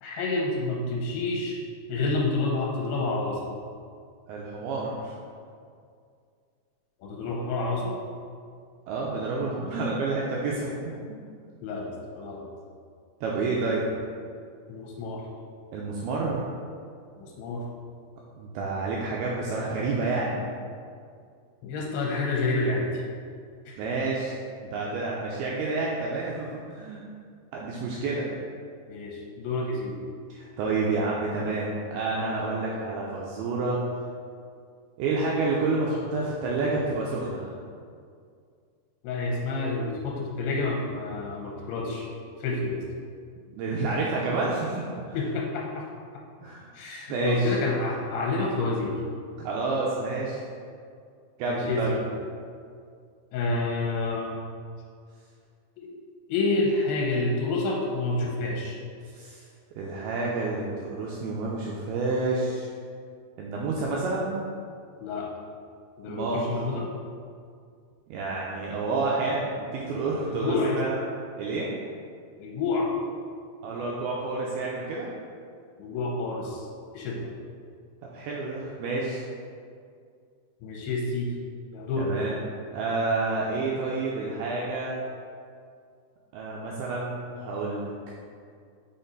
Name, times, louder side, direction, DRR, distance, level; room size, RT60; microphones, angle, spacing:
voice 1, 0.0-1.6 1.9-3.6 7.0-8.0 11.6-12.5 14.7-15.2 17.2-17.6 21.6-23.0 23.7-23.8 28.9-30.0 39.0-42.1 42.4-42.8 45.1-45.9 46.7-49.0 51.5-52.0 53.3-54.4 55.8-55.9 56.3-58.8 65.0-65.3 66.0-66.9 70.3-70.8 72.4-72.9 75.8-76.7 76.9-77.3 80.6-81.3 81.7-82.1, left 3 dB, 80° left, -2 dB, 2.6 m, -29 dB
voice 2, 4.3-5.1 8.9-10.7 13.2-13.8 15.7-16.5 18.4-20.4 23.8-24.4 24.7-27.0 27.5-28.3 30.3-33.8 35.0-37.5 43.6-45.2 46.4-46.7 47.1-47.6 49.4-50.4 51.4-51.9 59.1-59.5 59.8-62.7 63.4-64.3 66.1-66.4 68.1-71.0 71.4-71.7 73.6-75.1 78.1-79.2 82.0-82.4 82.7-85.0 86.3-87.9, right 3 dB, 80° right, -4 dB, 2.3 m, -29 dB
5.9 x 4.2 x 3.9 m, 2.2 s
omnidirectional pair, 4.7 m